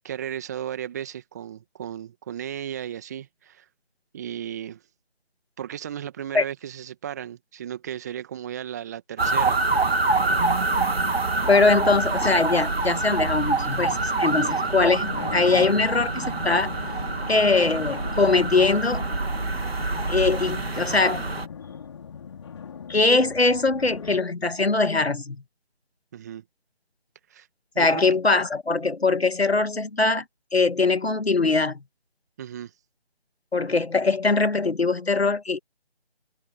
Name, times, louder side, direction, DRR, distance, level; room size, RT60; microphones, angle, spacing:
voice 1, 0.0-3.7 4.1-4.8 5.6-9.6 26.1-26.4 27.3-27.5 27.7-28.0 32.4-32.7, right 10 dB, 15° right, 2.0 m, -35 dB
sound 1, 9.2-21.5, right 3 dB, 70° right, 2.2 m, -26 dB
voice 2, 11.5-16.7 17.3-19.1 20.1-21.3 22.9-25.4 27.8-30.2 30.5-31.8 33.5-35.6, left 3 dB, 75° left, 1.9 m, -22 dB
sound 2, 11.6-24.2, left 7 dB, 25° left, 3.5 m, -39 dB
figure-of-eight pair, 160°, 31 cm